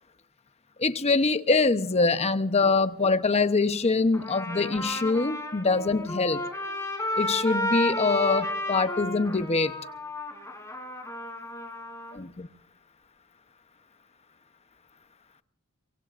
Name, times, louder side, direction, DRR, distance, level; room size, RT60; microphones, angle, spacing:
voice 1, 0.8-6.4 7.2-9.7 12.1-12.5, left 3 dB, 30° left, 11 dB, 0.8 m, -24 dB
Trumpet, 4.1-12.2, left 1 dB, 15° left, 3.3 m, -32 dB
24.0 x 24.0 x 2.5 m, 0.72 s
head